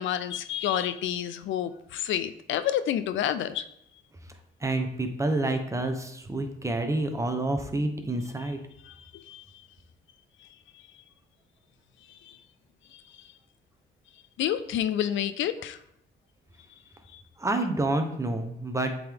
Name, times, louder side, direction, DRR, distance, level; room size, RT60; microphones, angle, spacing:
voice 1, 0.0-3.6 8.8-9.7 10.4-10.5 10.7-10.8 12.1-12.4 12.9-13.3 14.4-15.8 17.1-17.2, left 10 dB, 75° left, 12 dB, 0.4 m, -30 dB
voice 2, 4.6-8.6 17.4-18.9, right 2 dB, 15° right, 6 dB, 0.9 m, -28 dB
7.6 x 3.8 x 3.5 m, 0.75 s
cardioid pair, 90°, 20 cm